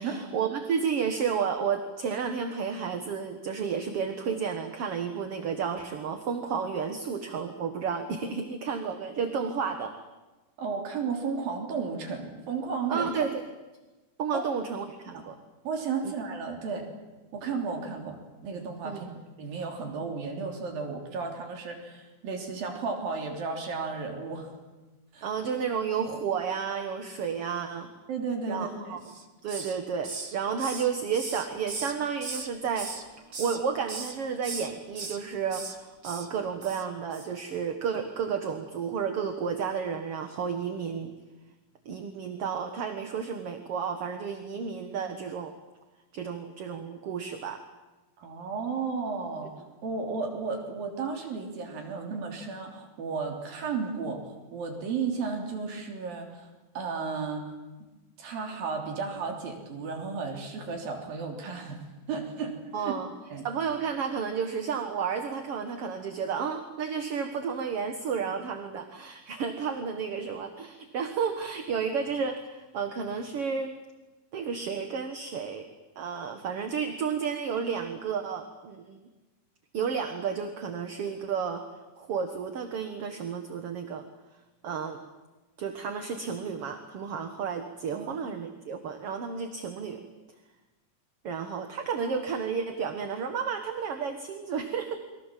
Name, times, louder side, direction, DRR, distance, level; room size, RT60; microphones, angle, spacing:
voice 1, 0.0-9.9 12.9-13.4 14.2-15.4 16.0-16.1 18.8-19.2 25.2-27.9 28.5-29.0 29.4-32.9 33.4-41.1 41.9-45.5 46.1-47.6 62.7-63.1 63.4-73.7 74.3-75.7 76.0-79.0 79.7-81.6 82.0-84.1 84.6-85.0 85.6-90.0 91.2-95.0, right 6 dB, 50° right, 6 dB, 2.0 m, -32 dB
voice 2, 10.6-13.1 14.3-14.5 15.1-15.2 15.7-16.9 17.3-24.6 25.1-25.3 28.1-29.0 48.2-49.5 49.8-54.3 54.5-56.5 56.8-57.6 58.2-61.8 62.1-63.0 63.3-63.4 87.9-88.2, right 5 dB, 75° right, 3 dB, 5.1 m, -33 dB
Hiss, 29.0-29.8 30.0-32.5 32.8-33.6 33.9-34.1 34.4-35.2 35.5-35.8 36.0-36.3 36.6-36.8 37.1-37.3, right 4 dB, 30° right, 1.8 m, -38 dB
29.5 x 23.5 x 7.5 m, 1.1 s
omnidirectional pair, 4.1 m